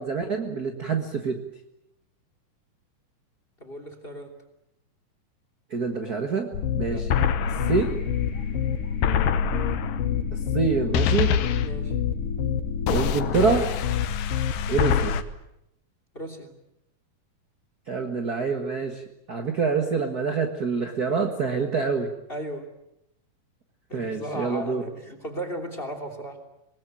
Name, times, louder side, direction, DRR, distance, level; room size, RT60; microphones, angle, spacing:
voice 1, 0.0-1.4 5.7-7.1 7.7-8.0 10.3-11.3 12.9-13.7 14.7-15.2 17.9-19.0 19.3-22.1 23.9-24.8, right 5 dB, 35° right, 5 dB, 1.6 m, -26 dB
voice 2, 3.6-4.3 6.9-7.1 11.6-12.0 16.1-16.5 22.3-22.7 23.9-26.4, equal, 15° left, 7 dB, 2.9 m, -36 dB
sound 1, 6.5-15.2, left 8 dB, 80° left, 2.7 m, -25 dB
sound 2, 7.4-13.5, left 2 dB, 45° left, 0.9 m, -40 dB
25.5 x 20.5 x 9.2 m, 0.83 s
omnidirectional pair, 3.9 m